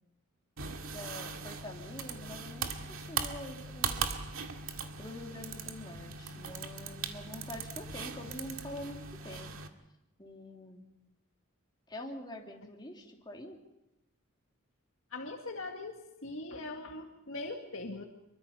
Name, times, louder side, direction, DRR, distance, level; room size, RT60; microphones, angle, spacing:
sound 1, 0.6-9.7, right 5 dB, 75° right, 2.1 m, -39 dB
voice 1, 0.9-4.1 5.0-9.5 10.2-10.8 11.9-13.6, left 1 dB, 20° left, 0 dB, 3.3 m, -45 dB
voice 2, 15.1-18.0, left 2 dB, 65° left, 2 dB, 2.0 m, -41 dB
25.5 x 23.0 x 5.6 m, 0.92 s
head